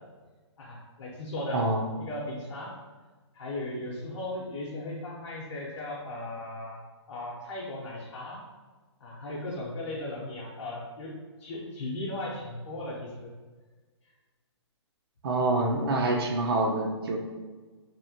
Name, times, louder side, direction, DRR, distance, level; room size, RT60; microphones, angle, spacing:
voice 1, 0.6-1.6 2.0-2.7 3.3-6.8 7.1-8.4 9.0-11.1 11.4-13.3, left 1 dB, 70° left, -5 dB, 0.6 m, -37 dB
voice 2, 1.5-2.0 15.2-17.2, right 2 dB, 55° right, 1 dB, 0.5 m, -26 dB
2.8 x 2.1 x 2.8 m, 1.3 s
hypercardioid pair, 155°, 16 cm